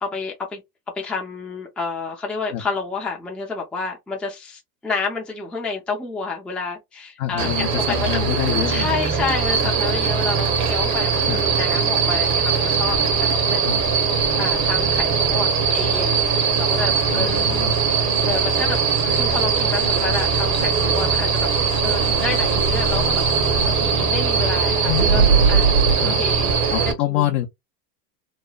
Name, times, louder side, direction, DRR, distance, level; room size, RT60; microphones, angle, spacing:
voice 1, 0.0-0.6 1.0-8.3 8.7-13.7 14.0-16.2 16.6-17.5 18.2-18.8 19.1-21.5 21.8-25.2 25.5-25.8 26.1-26.5 26.9-27.3, left 4 dB, ahead, 0.5 m, -29 dB
voice 2, 7.2-8.9 9.6-9.7 11.3-11.4 13.6-13.8 17.1-17.8 24.9-25.3 26.0-26.2 26.7-27.5, left 10 dB, 50° left, 0.6 m, -26 dB
sound 1, 7.4-26.9, right 5 dB, 40° right, 0.8 m, -21 dB
sound 2, 8.3-14.3, right 4 dB, 70° right, 1.1 m, -36 dB
sound 3, 15.7-24.5 24.9-26.0, right 5 dB, 85° right, 1.6 m, -26 dB
3.1 x 2.1 x 2.3 m
supercardioid pair, 115°, 47 cm